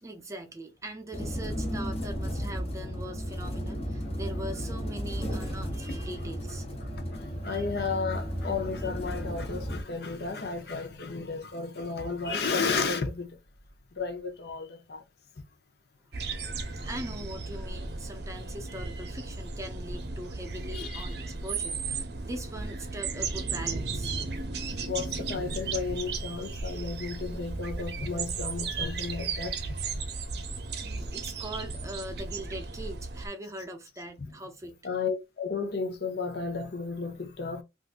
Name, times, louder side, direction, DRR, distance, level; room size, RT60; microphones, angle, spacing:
voice 1, 0.0-6.7 7.5-7.7 16.3-16.6 16.9-24.2 28.8-28.9 30.8-34.8, right 1 dB, 15° right, 0.5 m, -41 dB
sound 1, 1.1-9.8, equal, 35° left, 0.9 m, -34 dB
voice 2, 6.8-13.3 13.9-15.0 16.8-16.9 20.7-21.0 24.9-29.8 34.2-34.3 34.8-37.6, left 4 dB, 55° left, 0.6 m, -33 dB
sound 2, 16.1-33.3, right 4 dB, 60° right, 0.6 m, -35 dB
3.6 x 2.5 x 2.4 m
head